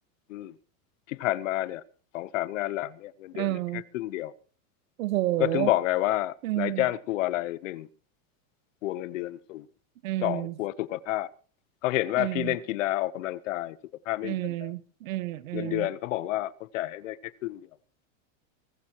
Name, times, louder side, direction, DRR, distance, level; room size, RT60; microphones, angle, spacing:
voice 1, 1.1-1.8 2.1-4.3 5.4-7.9 8.8-9.7 10.2-11.3 11.8-13.8 14.1-14.7 15.5-17.6, left 15 dB, 65° left, 1.1 m, -30 dB
voice 2, 3.3-3.8 5.0-5.7 6.4-6.8 10.0-10.5 12.2-12.5 14.2-15.9, right 16 dB, 80° right, 1.4 m, -30 dB
23.0 x 14.5 x 3.0 m
supercardioid pair, 175°, 40 cm